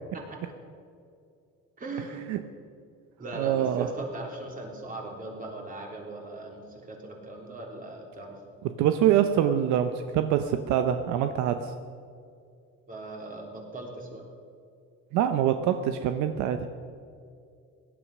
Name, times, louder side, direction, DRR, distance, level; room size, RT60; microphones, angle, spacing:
voice 1, 1.8-2.2 3.2-8.4 12.9-14.2, right 2 dB, 30° right, 1 dB, 3.5 m, -39 dB
voice 2, 3.4-3.9 8.8-11.7 15.1-16.7, right 10 dB, 70° right, 8 dB, 0.9 m, -25 dB
17.5 x 11.5 x 6.1 m, 2.4 s
cardioid pair, 125°, 30 cm